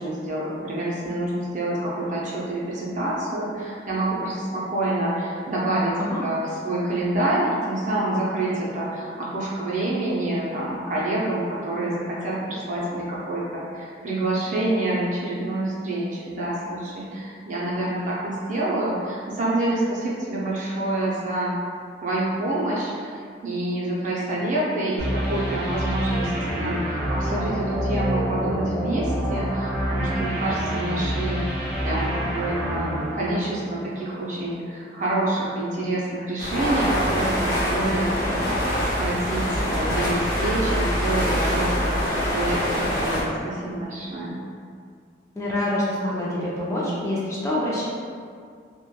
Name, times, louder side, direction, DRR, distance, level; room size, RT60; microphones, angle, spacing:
voice 1, 0.0-6.0 6.2-21.5 22.0-44.4, right 1 dB, 45° right, -6 dB, 0.5 m, -27 dB
sound 1, 25.0-34.0, equal, 15° right, 0.8 m, -27 dB
sound 2, 36.4-43.2, equal, 55° left, 0.7 m, -24 dB
voice 2, 45.4-47.8, left 1 dB, 15° left, -7 dB, 0.3 m, -26 dB
3.0 x 2.1 x 2.2 m, 2.2 s
head